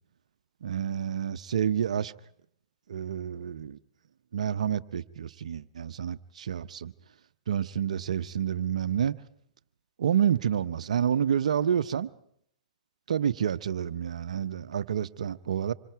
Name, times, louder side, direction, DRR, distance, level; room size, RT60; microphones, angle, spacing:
voice 1, 0.6-2.1 2.9-3.8 4.3-6.9 7.5-9.2 10.0-12.1 13.1-15.7, right 8 dB, 75° right, 0.8 m, -29 dB
26.5 x 24.0 x 4.7 m
hypercardioid pair, 110°, 4 cm